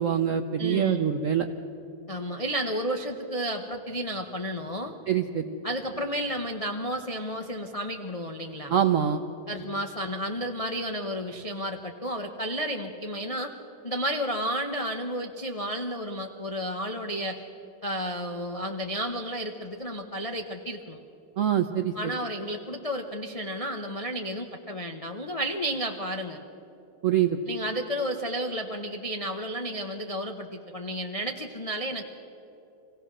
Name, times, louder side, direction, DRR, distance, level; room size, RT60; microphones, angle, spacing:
voice 1, 0.0-1.5 5.1-5.6 8.7-9.2 21.4-22.1 27.0-27.4, right 9 dB, 70° right, 6 dB, 0.7 m, -24 dB
voice 2, 0.6-1.1 2.1-4.9 5.6-8.7 9.5-13.5 13.8-17.4 17.8-21.0 22.0-26.4 27.5-32.0, equal, 50° left, 3 dB, 0.4 m, -32 dB
25.5 x 16.5 x 6.1 m, 3.0 s
omnidirectional pair, 2.1 m